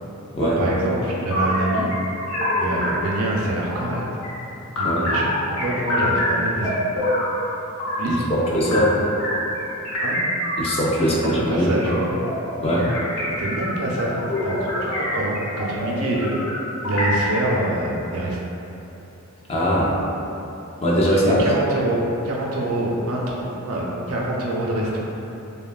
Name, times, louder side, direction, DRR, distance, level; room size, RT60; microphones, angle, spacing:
voice 1, 0.4-1.9 2.6-4.0 4.8-5.2 5.5-6.7 8.0-8.5 10.0-10.2 11.0-12.2 13.4-14.1 14.4-16.4 16.8-18.4 21.1-25.0, right 1 dB, 90° right, -3 dB, 0.5 m, -25 dB
sound 1, 1.3-3.2 3.7-4.3 4.8-8.1 8.6-17.3, left 1 dB, 85° left, 0.7 m, -26 dB
voice 2, 8.5-9.0 10.6-11.7 12.6-12.9 19.5-19.9 20.8-21.4, equal, 30° left, -5 dB, 0.4 m, -20 dB
3.3 x 2.2 x 2.2 m, 3.0 s
head